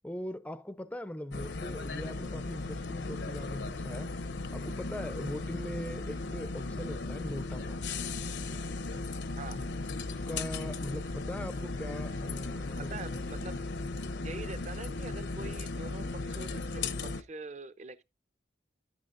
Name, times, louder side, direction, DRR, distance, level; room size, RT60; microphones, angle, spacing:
voice 1, 0.0-4.1 4.5-7.8 10.1-13.2, left 1 dB, 5° left, 0.5 m, -40 dB
sound 1, 1.3-17.2, left 3 dB, 65° left, 0.7 m, -36 dB
voice 2, 12.8-13.6 14.2-18.0, right 3 dB, 40° right, 0.7 m, -44 dB
11.5 x 9.1 x 2.6 m
head